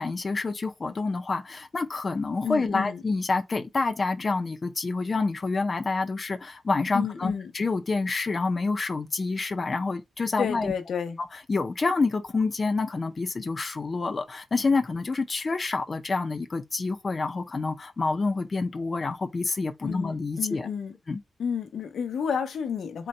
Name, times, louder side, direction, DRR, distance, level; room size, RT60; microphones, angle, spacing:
voice 1, 0.0-10.7 11.5-20.7 21.1-21.2, left 3 dB, 30° left, 0.5 m, -28 dB
voice 2, 2.4-3.0 6.9-7.5 10.4-11.2 19.8-21.0 21.4-23.1, left 7 dB, 85° left, 0.6 m, -31 dB
3.8 x 2.2 x 4.1 m
wide cardioid pair, 175°, 0 cm